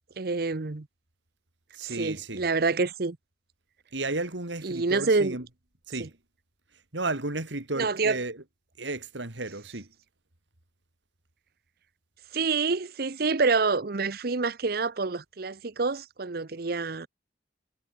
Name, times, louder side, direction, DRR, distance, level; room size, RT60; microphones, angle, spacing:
voice 1, 0.2-0.9 1.8-3.2 4.6-5.4 6.0-6.1 7.8-8.2 12.3-17.1, right 4 dB, 55° right, 0.8 m, -27 dB
voice 2, 1.7-2.4 3.9-5.5 5.9-6.2 6.9-8.4 8.8-9.9, right 2 dB, 90° right, 3.3 m, -33 dB
head